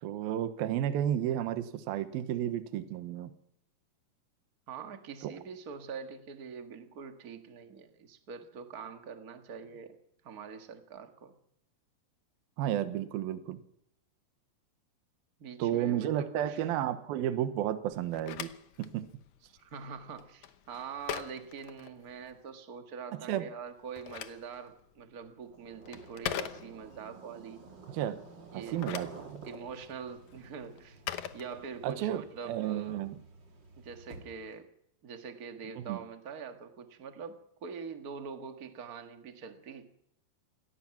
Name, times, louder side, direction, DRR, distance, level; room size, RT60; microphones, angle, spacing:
voice 1, 0.0-3.3 5.2-5.3 12.6-13.6 15.6-18.5 18.8-19.1 23.1-23.5 27.9-28.2 28.5-29.5 31.8-33.2 35.8-36.0, right 11 dB, 75° right, 10 dB, 2.9 m, -32 dB
voice 2, 4.7-10.0 10.2-11.3 15.4-16.6 19.6-27.6 28.5-29.1 29.4-31.0 31.3-33.0 33.8-34.7 35.0-39.9, right 6 dB, 50° right, 6 dB, 1.1 m, -44 dB
Telephone, 17.9-22.4 23.7-27.1 28.5-32.1, left 11 dB, 70° left, 1.8 m, -43 dB
sound 1, 25.5-34.6, right 3 dB, 30° right, 2.9 m, -52 dB
24.0 x 18.0 x 6.0 m, 0.77 s
omnidirectional pair, 4.6 m